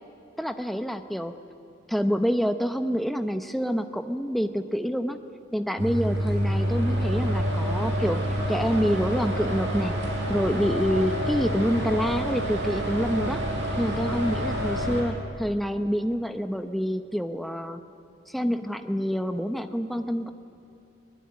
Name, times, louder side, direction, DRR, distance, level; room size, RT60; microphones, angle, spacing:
voice 1, 0.4-1.3 1.9-5.2 5.5-8.2 8.5-9.9 10.3-13.4 13.8-17.8 18.3-20.3, equal, ahead, 8 dB, 0.9 m, -27 dB
sound 1, 5.8-15.0, equal, 80° right, 5.3 m, -28 dB
22.5 x 20.5 x 9.7 m, 2.8 s
head